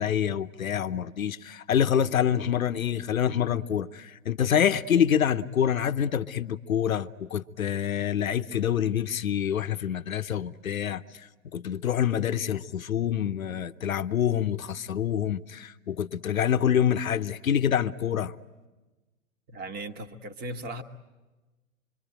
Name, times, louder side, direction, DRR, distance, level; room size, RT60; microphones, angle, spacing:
voice 1, 0.0-11.0 11.5-18.3, left 9 dB, 80° left, 0.9 m, -26 dB
voice 2, 19.5-20.8, right 1 dB, 20° right, 1.4 m, -37 dB
26.5 x 24.0 x 9.0 m
hypercardioid pair, 120°, 41 cm